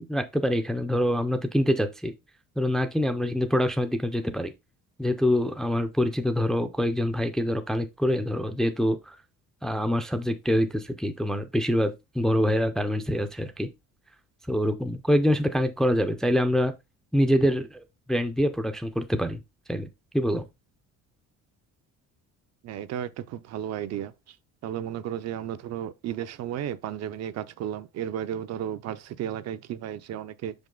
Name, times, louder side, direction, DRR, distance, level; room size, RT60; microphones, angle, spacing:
voice 1, 0.0-2.1 2.6-4.5 5.0-9.2 9.6-13.7 14.5-16.7 17.1-17.8 18.1-19.4 19.7-19.9 20.1-20.4, equal, ahead, 0.4 m, -25 dB
voice 2, 22.6-24.4 24.6-30.5, right 10 dB, 55° right, 0.6 m, -34 dB
6.0 x 5.3 x 3.7 m
cardioid pair, 165°, 31 cm